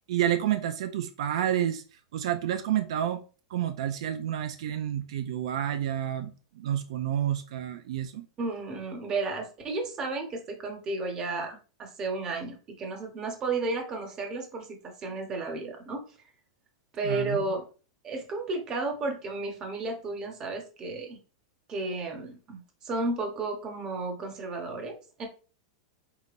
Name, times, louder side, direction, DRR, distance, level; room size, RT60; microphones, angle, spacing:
voice 1, 0.1-1.8 2.1-3.2 3.5-6.3 6.6-8.3 17.0-17.5, right 11 dB, 65° right, 8 dB, 0.5 m, -29 dB
voice 2, 8.4-16.0 16.9-17.6 18.0-21.2 21.7-25.3, right 3 dB, 20° right, 3 dB, 1.0 m, -33 dB
4.9 x 4.0 x 2.5 m, 0.35 s
supercardioid pair, 170°, 3 cm